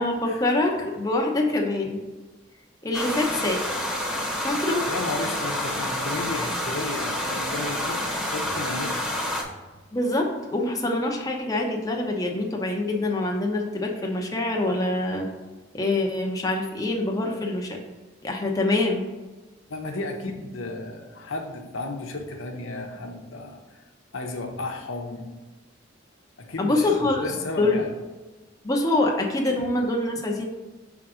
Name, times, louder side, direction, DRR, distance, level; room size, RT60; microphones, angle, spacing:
voice 1, 0.0-2.0 2.8-3.6 4.4-4.8 9.9-15.3 15.7-17.8 18.2-19.0 26.6-27.2 27.6-27.8 28.6-30.5, left 2 dB, 20° left, 1 dB, 0.7 m, -25 dB
sound 1, 2.9-9.4, left 1 dB, 5° right, 1.0 m, -28 dB
voice 2, 4.9-9.0 19.7-23.6 24.1-25.3 26.4-27.9, left 2 dB, 90° left, 3 dB, 0.8 m, -33 dB
5.9 x 3.6 x 4.9 m, 1.2 s
head